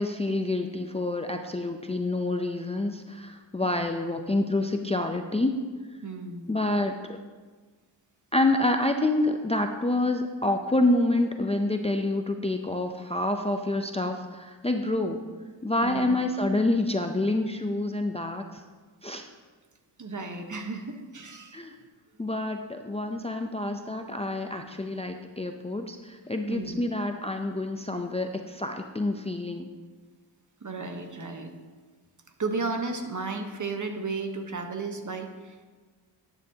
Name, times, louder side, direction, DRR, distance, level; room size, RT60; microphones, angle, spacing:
voice 1, 0.0-5.5 6.5-7.2 8.3-15.2 15.6-18.6 19.0-19.3 21.5-21.8 22.2-29.7, left 2 dB, 15° left, 5 dB, 0.5 m, -27 dB
voice 2, 6.0-6.5 15.8-16.1 20.0-21.6 26.5-26.8 30.6-31.5 32.4-35.6, right 3 dB, 40° right, 5 dB, 1.1 m, -34 dB
11.0 x 9.1 x 2.8 m, 1.4 s
cardioid pair, 75°, 45 cm